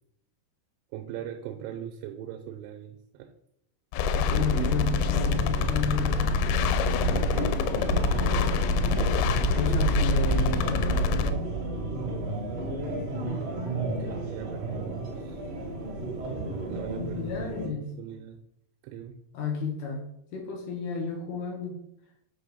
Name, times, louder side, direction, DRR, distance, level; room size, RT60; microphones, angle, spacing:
voice 1, 0.9-3.3 14.0-15.4 16.7-18.4 18.8-19.2, right 10 dB, 80° right, 5 dB, 2.8 m, -40 dB
sound 1, 3.9-11.3, left 6 dB, 85° left, 3.0 m, -26 dB
voice 2, 4.0-6.4 9.6-11.1 16.9-17.9 19.3-20.0 20.3-21.8, left 4 dB, 65° left, 0 dB, 2.7 m, -31 dB
sound 2, 4.1-17.7, right 3 dB, 65° right, 1.6 m, -31 dB
7.5 x 5.6 x 5.3 m, 0.75 s
omnidirectional pair, 5.9 m